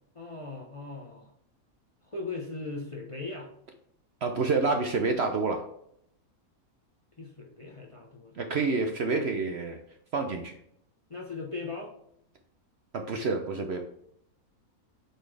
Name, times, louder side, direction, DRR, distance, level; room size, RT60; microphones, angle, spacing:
voice 1, 0.1-1.3 2.0-3.5 7.2-8.4 11.1-11.9, left 3 dB, 25° left, 0 dB, 0.7 m, -39 dB
voice 2, 4.2-5.6 8.4-9.8 10.1-10.5 12.9-13.8, right 4 dB, 60° right, 4 dB, 0.8 m, -28 dB
7.9 x 4.2 x 3.3 m, 0.71 s
omnidirectional pair, 1.6 m